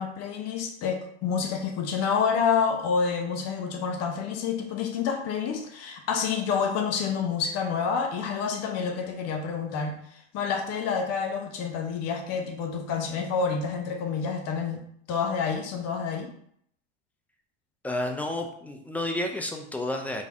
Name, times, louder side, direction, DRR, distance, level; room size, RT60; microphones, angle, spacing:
voice 1, 0.0-10.0 10.3-16.3, left 6 dB, 45° left, 3 dB, 0.9 m, -28 dB
voice 2, 17.8-20.2, left 1 dB, 5° left, 3 dB, 0.4 m, -31 dB
4.2 x 2.7 x 4.7 m, 0.68 s
supercardioid pair, 125°, 36 cm